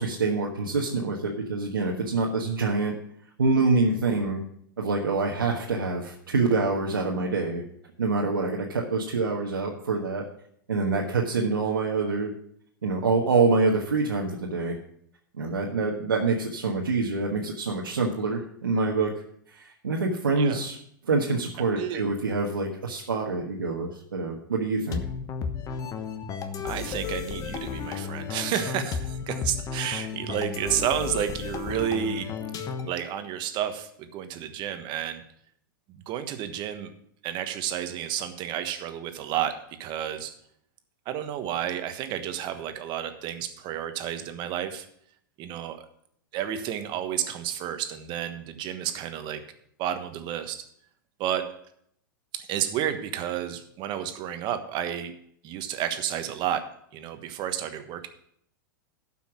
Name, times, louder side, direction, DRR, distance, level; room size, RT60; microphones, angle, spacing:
voice 1, 0.0-2.9 3.4-4.4 4.8-7.6 8.0-10.3 10.7-12.3 12.8-14.8 15.3-19.1 19.5-20.8 21.1-25.0, right 3 dB, 90° right, -2 dB, 1.4 m, -26 dB
voice 2, 21.7-22.0 26.6-32.3 32.9-35.2 35.9-36.9 37.2-40.3 41.0-44.9 45.4-45.8 46.3-49.4 49.8-50.7 51.2-51.5 52.3-55.1 55.4-56.6 56.9-58.1, right 10 dB, 45° right, 8 dB, 1.3 m, -31 dB
sound 1, 24.9-33.1, left 6 dB, 30° left, 1.1 m, -33 dB
12.5 x 5.8 x 6.0 m, 0.69 s
hypercardioid pair, 105°, 11 cm